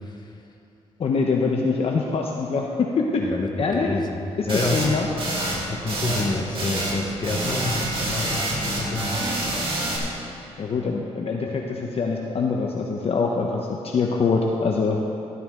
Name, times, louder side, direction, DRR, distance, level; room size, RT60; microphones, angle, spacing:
voice 1, 1.0-2.7 2.9-3.3 3.6-3.9 4.4-4.5 4.7-5.1 10.6-15.0, left 4 dB, 55° left, 0 dB, 0.9 m, -24 dB
voice 2, 3.1-4.8 5.7-9.2, left 3 dB, 35° left, 1 dB, 1.2 m, -28 dB
sound 1, 4.5-4.9 5.2-5.6 5.9-6.3 6.5-7.0 7.2-10.0, right 1 dB, 50° right, 2.6 m, -27 dB
12.5 x 12.5 x 3.7 m, 2.8 s
cardioid pair, 110°, 12 cm